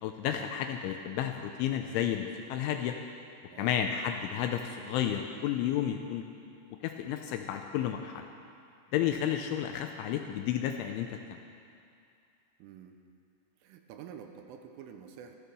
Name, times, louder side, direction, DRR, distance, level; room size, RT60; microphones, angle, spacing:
voice 1, 0.0-3.0 3.6-6.2 6.8-8.3 8.9-11.4, left 10 dB, 85° left, 5 dB, 2.8 m, -32 dB
voice 2, 12.6-13.0 13.6-15.4, right 8 dB, 80° right, 5 dB, 3.2 m, -48 dB
14.5 x 14.0 x 6.8 m, 2.5 s
omnidirectional pair, 6.0 m